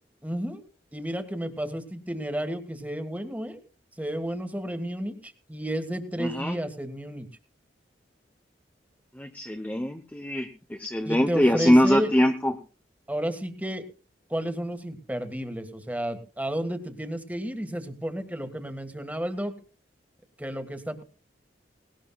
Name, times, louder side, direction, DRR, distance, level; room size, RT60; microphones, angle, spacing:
voice 1, 0.2-0.6 0.9-3.6 4.0-7.3 11.0-12.1 13.1-13.8 14.3-19.5 20.4-21.0, right 1 dB, 10° right, 8 dB, 1.6 m, -32 dB
voice 2, 6.2-6.6 9.2-12.5, equal, 10° left, 5 dB, 0.8 m, -23 dB
19.0 x 18.5 x 2.3 m, 0.36 s
head